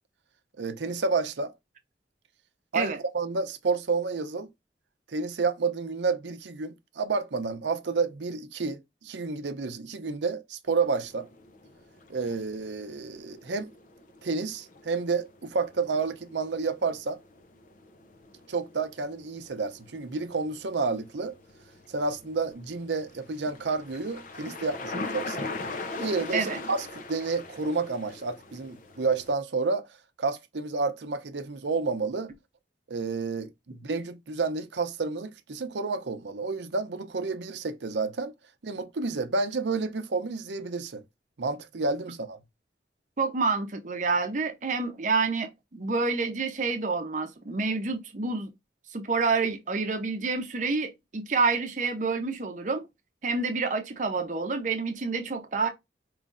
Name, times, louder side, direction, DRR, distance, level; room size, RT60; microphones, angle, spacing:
voice 1, 0.6-1.5 2.7-4.5 5.1-11.3 12.1-13.7 14.2-17.2 18.5-21.4 21.9-25.5 26.0-29.9 30.2-32.3 32.9-38.3 38.6-41.0 41.4-42.4, right 4 dB, 90° right, 0.6 m, -30 dB
sound 1, 10.7-29.3, left 3 dB, 45° left, 0.6 m, -42 dB
voice 2, 43.2-48.5 48.9-52.9 53.2-55.7, right 4 dB, 45° right, 0.7 m, -28 dB
5.1 x 3.1 x 2.5 m
head